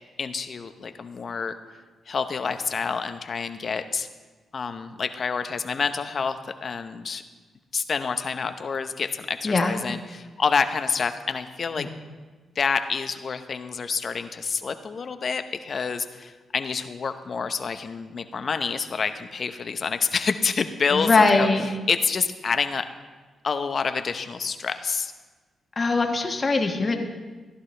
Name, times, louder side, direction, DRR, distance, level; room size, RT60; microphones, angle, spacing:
voice 1, 0.2-1.5 2.1-4.1 4.5-7.2 7.7-11.9 12.6-22.9 23.4-25.1, left 5 dB, 50° left, 9 dB, 0.8 m, -28 dB
voice 2, 9.4-9.8 11.8-11.9 20.9-21.7 25.8-27.0, left 3 dB, 35° left, 3 dB, 1.4 m, -21 dB
15.0 x 11.0 x 3.3 m, 1.3 s
cardioid pair, 70°, 0 cm